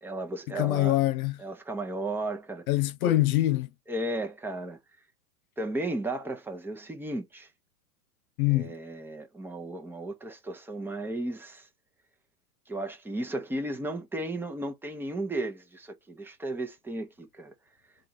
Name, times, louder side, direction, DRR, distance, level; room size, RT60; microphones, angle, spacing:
voice 1, 0.0-1.0 1.4-2.7 3.0-3.1 3.9-4.8 5.6-7.5 8.5-11.7 12.7-17.5, right 2 dB, 5° right, 0.8 m, -34 dB
voice 2, 0.5-1.4 2.7-3.7 8.4-8.7, left 16 dB, 65° left, 0.5 m, -24 dB
3.6 x 2.6 x 4.4 m
hypercardioid pair, 100°, 46 cm